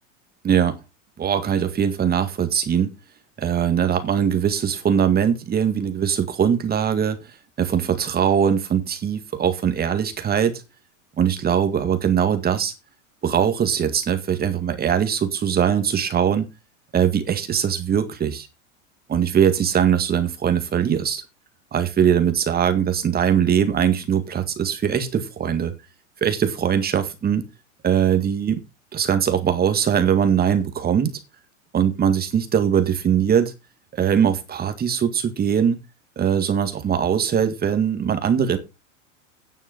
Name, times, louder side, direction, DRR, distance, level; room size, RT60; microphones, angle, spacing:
voice 1, 0.4-0.8 1.2-2.9 3.4-7.3 7.6-10.6 11.2-12.7 13.2-16.5 16.9-18.5 19.1-21.2 21.7-25.7 26.2-27.4 27.8-28.6 28.9-31.2 31.7-33.5 33.9-35.8 36.2-38.6, right 8 dB, 25° right, 9 dB, 2.0 m, -21 dB
9.8 x 7.1 x 5.2 m, 0.27 s
hypercardioid pair, 115°, 39 cm